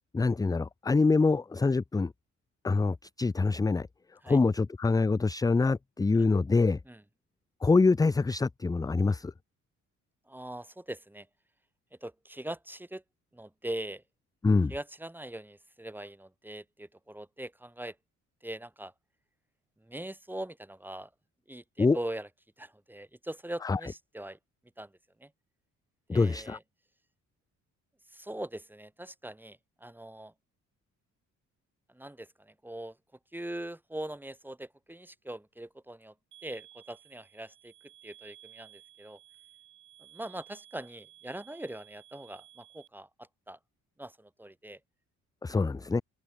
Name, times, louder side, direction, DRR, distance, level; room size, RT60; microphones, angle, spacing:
voice 1, 0.1-2.1 2.6-3.9 4.3-6.8 7.6-9.3 14.4-14.7 21.8-22.0 23.6-23.8 26.1-26.6 45.4-46.0, left 3 dB, 10° left, 0.4 m, -25 dB
voice 2, 10.3-11.3 12.0-13.0 13.3-14.0 14.7-18.0 18.4-18.9 19.8-21.1 21.5-22.3 22.6-24.4 24.8-24.9 25.2-25.3 26.1-26.6 28.1-30.3 31.9-33.0 33.3-36.1 36.4-37.7 38.0-39.2 40.0-43.6 44.0-44.8 45.5-45.6, right 1 dB, 5° right, 2.1 m, -41 dB
sound 1, 36.3-42.9, right 12 dB, 75° right, 7.5 m, -56 dB
open air
cardioid pair, 90°, 30 cm